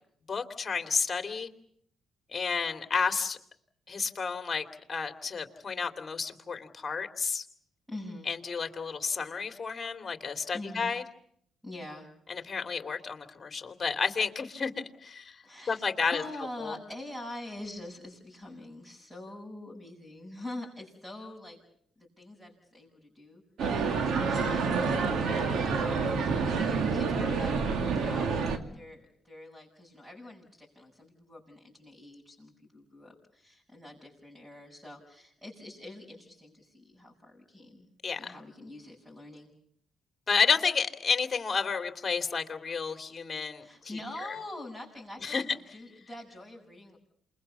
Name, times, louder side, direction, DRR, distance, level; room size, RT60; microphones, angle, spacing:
voice 1, 0.3-1.5 2.3-3.4 3.9-7.4 8.3-11.0 12.3-14.7 15.0-15.4 15.7-16.2 16.6-16.8 38.0-38.3 40.3-44.0 45.2-45.4, left 5 dB, 35° left, 7 dB, 3.0 m, -31 dB
voice 2, 7.9-8.3 10.5-10.9 11.6-12.1 15.4-21.6 22.0-23.4 24.2-24.8 25.4-27.5 27.9-28.5 28.7-37.9 38.1-39.5 43.5-47.0, left 1 dB, 10° right, -2 dB, 7.9 m, -45 dB
sound 1, 23.6-28.6, right 5 dB, 70° right, 2.6 m, -28 dB
28.0 x 22.0 x 7.2 m, 0.69 s
cardioid pair, 90°, 0 cm